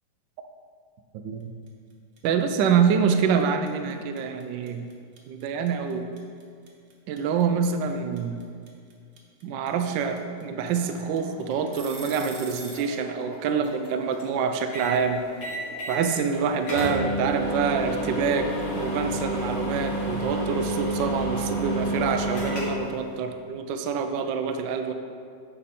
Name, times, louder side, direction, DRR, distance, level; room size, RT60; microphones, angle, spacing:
sound 1, 1.7-1.9 2.2-12.9, right 3 dB, 55° right, 1.5 m, -44 dB
voice 1, 2.2-4.8 5.3-6.1 7.1-8.4 9.4-15.2 15.9-18.5 18.7-24.9, right 6 dB, 75° right, 6 dB, 1.1 m, -26 dB
sound 2, 10.8-19.1, equal, 60° left, 2.5 m, -45 dB
sound 3, 14.7-15.0 15.4-16.0 16.3-16.4 16.7-23.0, right 1 dB, 85° left, 2.9 m, -29 dB
9.8 x 5.7 x 4.2 m, 2.2 s
omnidirectional pair, 2.3 m